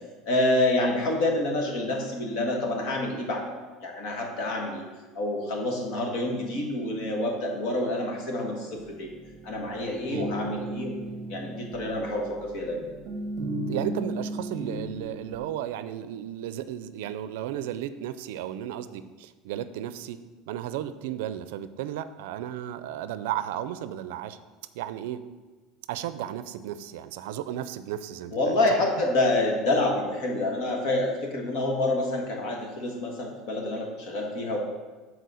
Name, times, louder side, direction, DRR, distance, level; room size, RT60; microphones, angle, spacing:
voice 1, 0.2-3.4 3.8-4.8 5.1-9.1 9.4-10.9 11.3-12.8 28.3-34.6, left 2 dB, 50° left, 0 dB, 1.5 m, -27 dB
sound 1, 8.7-15.4, right 2 dB, 25° right, 1.3 m, -35 dB
voice 2, 13.7-20.2 20.5-24.4 24.7-25.2 25.9-28.5, right 11 dB, 85° right, 13 dB, 0.4 m, -34 dB
6.8 x 4.2 x 6.3 m, 1.3 s
cardioid pair, 175°, 0 cm